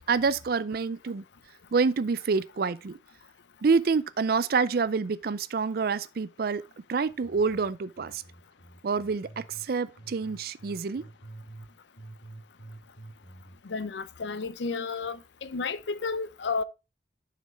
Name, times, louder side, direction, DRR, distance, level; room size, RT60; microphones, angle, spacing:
voice 1, 0.1-1.2 1.7-3.0 3.6-6.6 6.9-8.2 8.8-11.0, right 5 dB, 55° right, 0.4 m, -27 dB
sound 1, 7.1-9.7 10.0-11.7 12.0-13.6, right 2 dB, 55° left, 3.1 m, -48 dB
voice 2, 13.6-16.6, left 4 dB, 75° left, 0.6 m, -32 dB
7.3 x 5.8 x 3.4 m
head